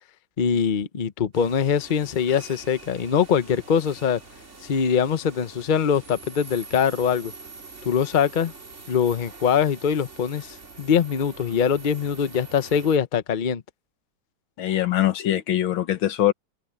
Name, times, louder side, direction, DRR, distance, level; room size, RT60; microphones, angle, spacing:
voice 1, 0.4-4.2 4.6-7.3 7.8-8.5 8.9-13.6, left 7 dB, 60° left, 0.4 m, -23 dB
sound 1, 1.3-13.0, right 3 dB, 35° right, 3.1 m, -44 dB
voice 2, 14.6-16.3, left 13 dB, 80° left, 2.0 m, -22 dB
open air
omnidirectional pair, 2.2 m